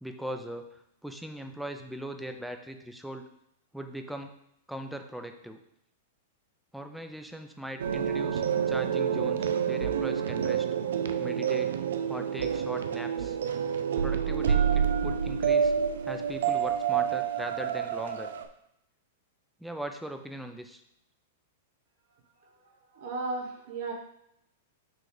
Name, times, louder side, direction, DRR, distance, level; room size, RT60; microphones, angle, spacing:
voice 1, 0.0-3.2 3.7-4.3 4.7-5.6 6.7-10.7 11.2-11.7 12.1-13.4 14.0-15.7 16.0-18.3 19.6-20.8, right 1 dB, ahead, 6 dB, 0.5 m, -40 dB
sound 1, 7.8-18.4, right 8 dB, 85° right, 0.5 m, -28 dB
voice 2, 22.4-23.9, right 3 dB, 55° right, 1 dB, 1.4 m, -36 dB
6.2 x 3.2 x 4.9 m, 0.77 s
supercardioid pair, 155°, 0 cm